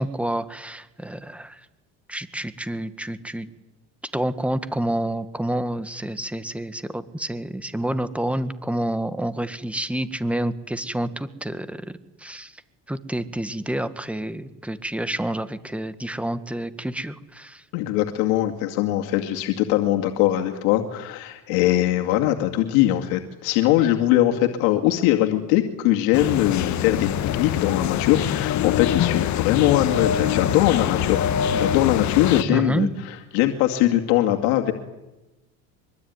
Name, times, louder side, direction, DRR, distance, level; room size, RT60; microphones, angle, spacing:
voice 1, 0.0-1.6 2.1-3.5 4.1-11.9 12.2-12.5 12.9-17.6 32.5-32.9, right 1 dB, 5° right, 11 dB, 1.7 m, -28 dB
voice 2, 17.7-32.9 33.3-34.7, left 13 dB, 85° left, 3 dB, 2.3 m, -21 dB
sound 1, 26.1-32.4, left 10 dB, 50° left, 1.6 m, -24 dB
24.0 x 24.0 x 9.6 m, 1.0 s
cardioid pair, 115°, 35 cm